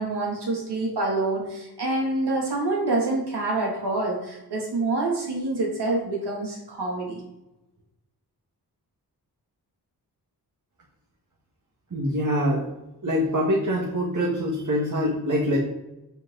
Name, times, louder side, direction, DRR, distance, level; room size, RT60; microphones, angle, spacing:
voice 1, 0.0-7.2, right 2 dB, 85° right, -2 dB, 3.1 m, -26 dB
voice 2, 11.9-12.7 13.0-15.6, equal, 50° right, -3 dB, 2.2 m, -24 dB
9.0 x 7.6 x 4.2 m, 0.93 s
wide cardioid pair, 105°, 39 cm